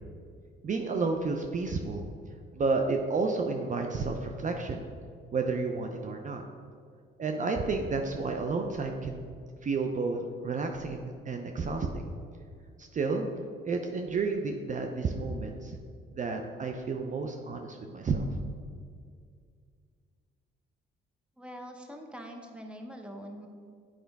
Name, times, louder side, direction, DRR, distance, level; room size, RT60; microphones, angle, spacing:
voice 1, 0.6-2.0 2.5-4.9 5.3-6.4 7.2-9.3 9.6-12.1 12.8-13.3 13.6-15.8 16.1-18.3, right 4 dB, 40° right, 3 dB, 0.6 m, -31 dB
voice 2, 21.4-23.5, equal, 5° right, 3 dB, 0.8 m, -43 dB
8.7 x 5.0 x 3.5 m, 2.2 s
cardioid pair, 90°, 20 cm